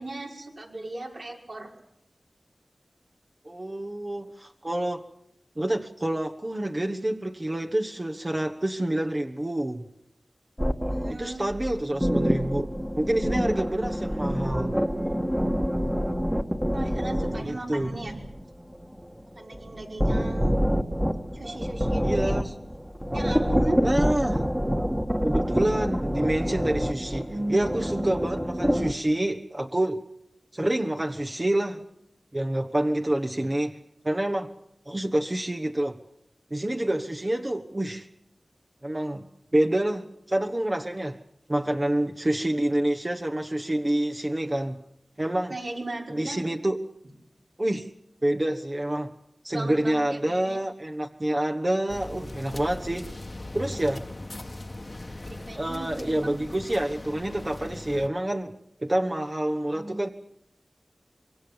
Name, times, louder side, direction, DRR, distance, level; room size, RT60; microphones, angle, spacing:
voice 1, 0.0-1.7 10.9-11.4 16.7-18.2 19.4-20.5 21.3-22.3 23.1-23.8 45.5-46.4 49.5-50.6 55.3-56.4, right 2 dB, 70° right, -1 dB, 5.7 m, -36 dB
voice 2, 3.4-5.0 5.6-9.9 11.1-14.8 17.4-17.9 22.0-22.7 23.8-24.4 25.2-30.0 30.5-31.8 32.3-33.7 34.0-34.5 34.9-36.0 36.5-38.1 38.8-39.3 39.5-41.2 41.5-44.8 45.2-45.6 46.1-46.8 47.6-47.9 48.2-49.1 49.4-53.1 53.5-54.0 55.5-58.5 58.8-60.1, right 1 dB, 35° right, 3 dB, 1.3 m, -27 dB
sound 1, 10.6-17.4 17.8-28.9, equal, 5° right, 1.7 m, -27 dB
sound 2, 51.9-58.1, left 2 dB, 40° left, 1.5 m, -39 dB
25.5 x 22.5 x 7.2 m, 0.79 s
wide cardioid pair, 50°, 0 cm